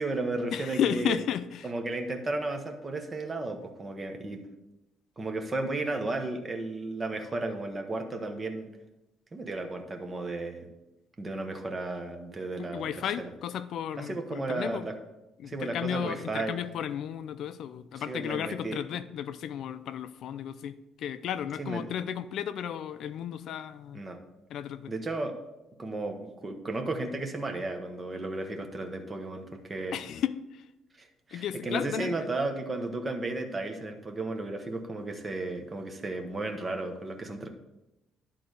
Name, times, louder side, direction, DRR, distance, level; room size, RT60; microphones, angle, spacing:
voice 1, 0.0-1.2 1.6-4.4 5.2-8.7 9.3-10.7 11.2-13.3 14.0-14.9 15.4-16.6 17.9-18.8 21.6-21.9 23.9-24.2 24.9-25.4 25.8-30.0 31.0-37.5, right 2 dB, 20° right, 4 dB, 1.0 m, -34 dB
voice 2, 0.5-1.7 12.7-14.8 15.4-24.0 24.5-24.9 29.9-30.6 31.3-32.1, left 9 dB, 55° left, 13 dB, 0.4 m, -33 dB
10.5 x 3.9 x 6.4 m, 0.96 s
cardioid pair, 155°, 0 cm